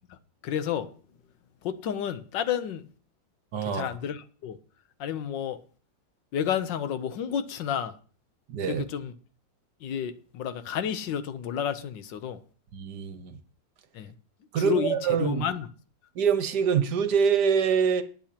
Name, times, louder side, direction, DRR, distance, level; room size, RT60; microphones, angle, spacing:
voice 1, 0.4-0.9 1.6-2.8 3.6-4.6 5.0-5.6 6.3-7.9 8.6-9.1 9.8-12.4 13.9-14.1 14.6-15.7, left 9 dB, 80° left, 1.5 m, -31 dB
voice 2, 3.5-3.9 8.5-8.8 12.7-13.4 14.5-15.4 16.1-18.0, right 7 dB, 65° right, 1.5 m, -25 dB
20.0 x 8.8 x 2.9 m
omnidirectional pair, 2.0 m